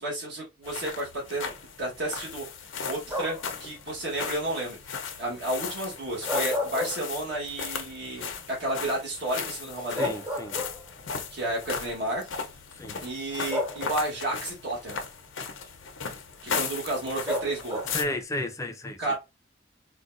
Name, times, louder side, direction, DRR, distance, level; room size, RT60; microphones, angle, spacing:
voice 1, 0.0-1.5 1.8-10.1 11.3-12.2 13.0-15.0 16.4-17.8 19.0-19.1, right 1 dB, 60° right, 1.2 m, -32 dB
sound 1, 0.6-18.0, left 6 dB, 75° left, 0.6 m, -37 dB
sound 2, 3.1-3.6 6.1-7.5 7.9-8.0 9.5-9.6 10.0-11.1 12.1-12.2 13.5-14.2 17.3-18.1, left 1 dB, 20° right, 0.8 m, -32 dB
voice 2, 10.0-10.5 12.8-13.0 17.9-19.1, left 1 dB, 15° left, 0.4 m, -33 dB
3.8 x 2.2 x 2.5 m
head